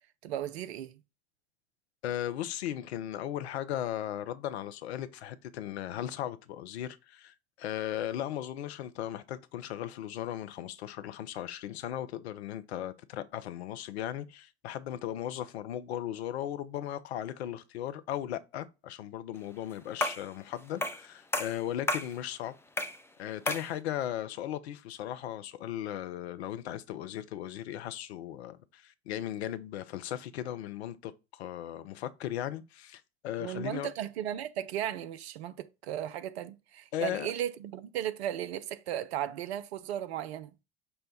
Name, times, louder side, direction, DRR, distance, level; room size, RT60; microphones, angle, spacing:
voice 1, 0.2-1.0 33.4-40.5, right 11 dB, 65° right, 0.6 m, -36 dB
voice 2, 2.0-22.5 23.2-33.9 36.9-37.3, left 11 dB, 70° left, 0.6 m, -37 dB
sound 1, 20.0-20.3 20.8-21.1 21.3-22.1 22.8-23.0 23.5-23.7, left 1 dB, 5° left, 0.6 m, -32 dB
5.5 x 2.2 x 4.0 m
figure-of-eight pair, 65°, 34 cm